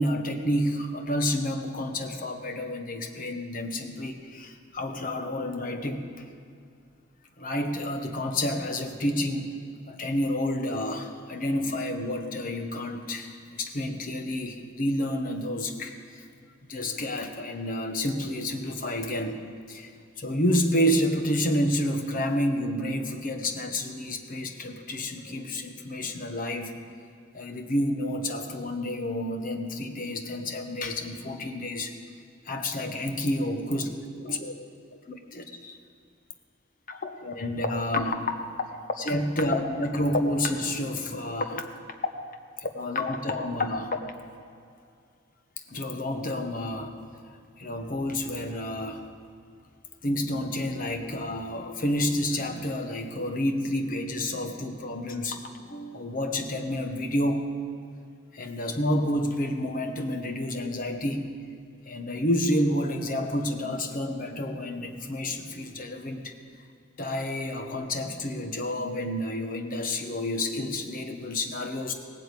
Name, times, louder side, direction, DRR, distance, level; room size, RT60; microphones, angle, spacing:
voice 1, 0.0-6.1 7.4-9.6 9.9-15.9 16.7-19.4 19.7-19.9 20.2-26.7 27.3-31.9 32.4-33.9 34.2-34.5 35.1-35.8 36.9-41.7 42.2-42.3 42.6-44.2 45.7-46.9 47.6-49.0 50.0-57.5 58.3-61.4 61.8-66.3 67.0-71.9, left 1 dB, 45° left, 5 dB, 1.2 m, -29 dB
17.5 x 8.2 x 8.4 m, 2.4 s
head